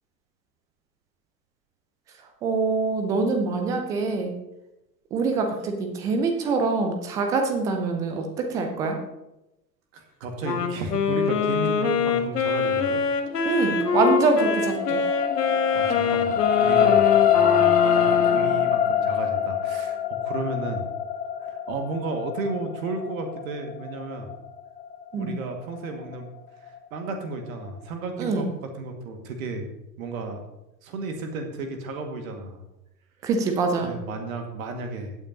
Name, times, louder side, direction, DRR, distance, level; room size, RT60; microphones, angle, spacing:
voice 1, 2.4-4.3 5.1-9.0 13.4-15.0 25.1-25.4 28.2-28.5 33.2-33.9, right 4 dB, 10° right, 5 dB, 0.3 m, -24 dB
voice 2, 9.9-13.0 15.7-20.8 21.4-24.3 25.2-26.3 26.9-29.7 30.0-30.4 30.8-32.6 33.8-35.2, right 3 dB, 55° right, 4 dB, 2.0 m, -33 dB
Wind instrument woodwind instrument, 10.4-18.7, left 5 dB, 70° left, 1.4 m, -25 dB
sound 1, 13.6-26.1 26.7-26.8, left 10 dB, 20° left, 0.9 m, -24 dB
15.5 x 9.0 x 2.8 m, 0.93 s
figure-of-eight pair, 95°, 49 cm